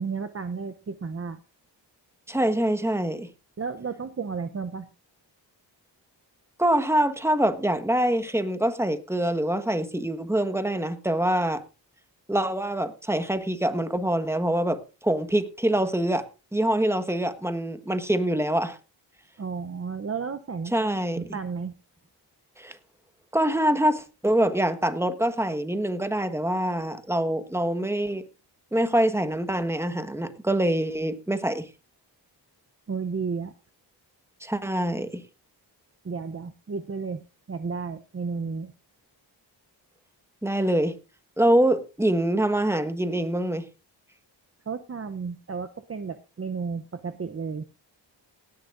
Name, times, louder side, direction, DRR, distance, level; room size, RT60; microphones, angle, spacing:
voice 1, 0.0-1.4 3.6-4.9 19.4-20.7 21.2-21.7 32.9-33.5 36.0-37.2 37.5-38.7 44.7-47.7, right 5 dB, 30° right, 0.7 m, -32 dB
voice 2, 2.3-3.3 6.6-11.6 12.3-16.2 16.5-18.8 20.7-21.4 22.6-22.8 23.3-28.2 28.7-31.7 34.4-35.2 40.4-40.9 41.4-43.7, right 1 dB, 5° right, 1.4 m, -25 dB
18.0 x 10.5 x 2.6 m
cardioid pair, 65°, 44 cm